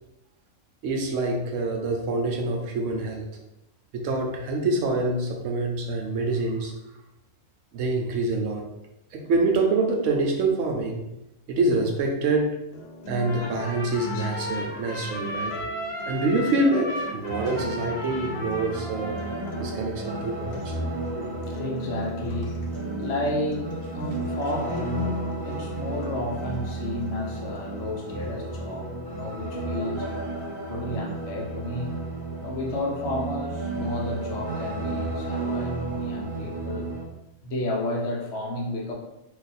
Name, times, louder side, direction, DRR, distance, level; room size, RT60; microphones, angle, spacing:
voice 1, 0.8-3.3 3.9-6.7 7.7-8.7 9.1-11.1 11.5-12.6 13.1-15.5 16.0-19.2 19.6-20.7 36.2-36.3, right 2 dB, 70° right, 2 dB, 0.9 m, -26 dB
sound 1, 12.7-28.7, right 1 dB, 85° left, 1.0 m, -41 dB
Trumpet, 13.2-19.8, left 1 dB, 40° left, 0.5 m, -35 dB
voice 2, 14.0-14.3 16.0-16.2 19.6-19.8 21.0-23.7 23.9-30.1 30.7-32.0 32.4-36.9 37.4-38.9, left 1 dB, 60° left, -1 dB, 0.9 m, -32 dB
sound 2, 17.3-37.0, right 2 dB, 40° right, 0.3 m, -33 dB
2.6 x 2.4 x 4.1 m, 0.90 s
omnidirectional pair, 1.4 m